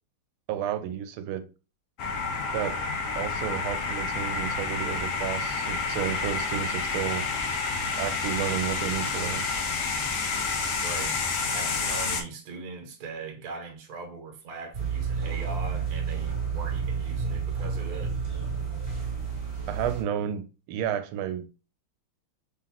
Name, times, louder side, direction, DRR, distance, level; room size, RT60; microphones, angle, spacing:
voice 1, 0.5-1.5 2.5-2.9 3.1-7.3 8.0-9.5 19.7-21.5, right 9 dB, 90° right, 1.4 m, -31 dB
sound 1, 2.0-12.2, left 4 dB, 75° left, 0.7 m, -29 dB
voice 2, 10.8-11.2 11.5-18.1, right 4 dB, 55° right, 1.2 m, -40 dB
sound 2, 14.7-20.0, right 6 dB, 15° right, 1.6 m, -30 dB
3.8 x 3.8 x 2.8 m
omnidirectional pair, 2.2 m